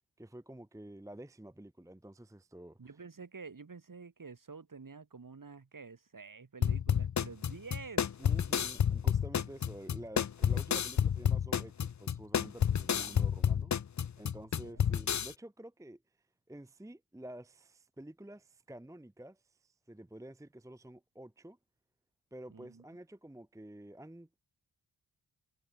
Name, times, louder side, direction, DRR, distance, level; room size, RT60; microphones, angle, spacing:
voice 1, 0.2-3.0 8.2-13.7 14.2-16.0 16.5-21.6 22.3-24.4, right 1 dB, 5° right, 0.9 m, -50 dB
voice 2, 2.8-8.1 13.0-13.3 14.6-14.9 22.5-22.8, right 4 dB, 45° right, 3.5 m, -49 dB
sound 1, 6.6-15.3, left 8 dB, 40° left, 0.6 m, -30 dB
wide cardioid pair, 80°, 46 cm